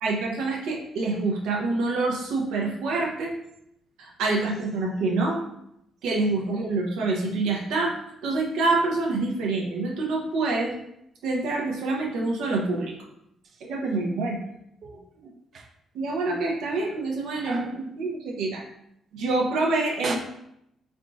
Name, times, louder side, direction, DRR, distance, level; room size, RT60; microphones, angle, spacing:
voice 1, 0.0-3.3 4.0-5.4 6.0-10.7 11.2-12.9 13.6-14.4 15.9-18.6 19.1-20.1, right 3 dB, 85° right, -2 dB, 0.8 m, -26 dB
voice 2, 14.8-15.7 17.4-17.8 20.0-20.2, right 4 dB, 55° right, 3 dB, 0.6 m, -36 dB
3.6 x 2.4 x 3.7 m, 0.77 s
cardioid pair, 90°, 0 cm